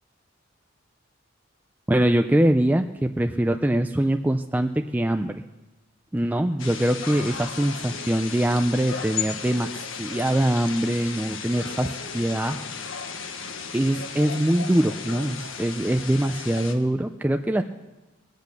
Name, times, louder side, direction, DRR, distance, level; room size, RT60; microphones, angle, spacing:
voice 1, 1.9-5.4 6.1-9.7 10.0-12.6 13.2-13.5 13.7-17.6, right 1 dB, 10° right, 6 dB, 0.4 m, -23 dB
sound 1, 6.6-16.7, left 6 dB, 90° left, 1.3 m, -35 dB
20.5 x 8.3 x 6.6 m, 1.1 s
head